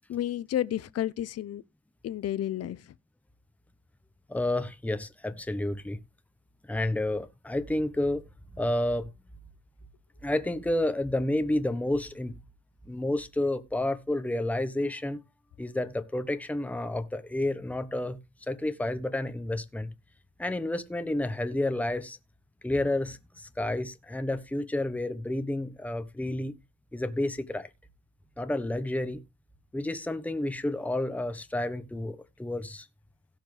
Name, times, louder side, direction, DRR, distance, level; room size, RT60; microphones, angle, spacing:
voice 1, 0.1-1.6 2.0-2.8, left 12 dB, 55° left, 0.7 m, -31 dB
voice 2, 4.3-6.0 6.7-8.2 8.5-9.1 10.2-12.3 12.9-15.2 15.6-18.2 18.5-19.9 20.4-22.2 22.6-26.5 26.9-27.7 28.4-29.2 29.7-32.9, left 1 dB, 5° left, 1.1 m, -30 dB
17.0 x 5.8 x 3.4 m
cardioid pair, 90°, 30 cm